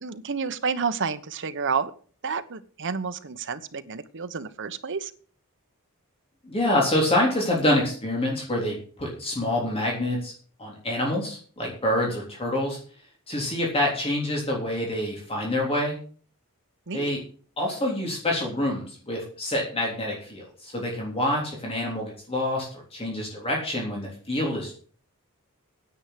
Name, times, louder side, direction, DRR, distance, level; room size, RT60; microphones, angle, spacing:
voice 1, 0.0-1.9 2.2-5.1 16.9-17.1, right 5 dB, 55° right, 11 dB, 1.1 m, -30 dB
voice 2, 6.4-10.3 10.6-12.8 13.3-16.0 16.9-17.2 17.6-24.7, left 1 dB, 25° left, -1 dB, 3.5 m, -26 dB
9.9 x 8.8 x 7.6 m, 0.43 s
head